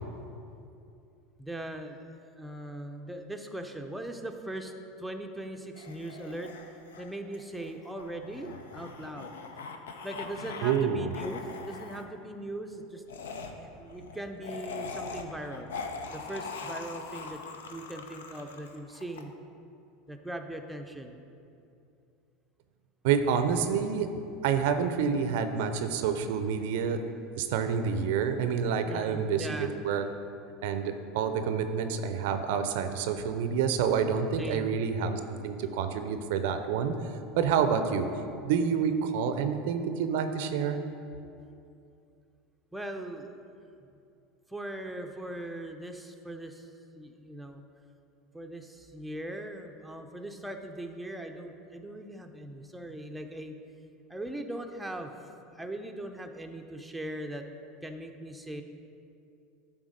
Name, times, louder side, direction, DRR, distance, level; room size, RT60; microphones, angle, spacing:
voice 1, 1.4-4.7 5.0-6.5 7.0-9.4 10.0-11.4 11.7-13.0 13.6-15.7 16.1-17.4 17.7-19.3 20.1-21.2 28.8-29.7 34.4-34.7 42.7-43.4 43.8-43.9 44.5-46.7 46.9-47.6 48.3-53.6 54.1-57.4 57.8-58.6, right 1 dB, 5° right, 4 dB, 0.6 m, -40 dB
sound 1, 5.8-10.9 11.1-12.0 13.1-19.2, left 4 dB, 85° left, 0.5 m, -42 dB
voice 2, 10.6-11.1 23.0-24.1 24.4-27.0 27.3-30.0 30.6-36.9 37.3-38.1 38.4-40.8, right 7 dB, 70° right, 8 dB, 0.5 m, -28 dB
8.9 x 3.6 x 5.0 m, 2.6 s
hypercardioid pair, 95°, 0 cm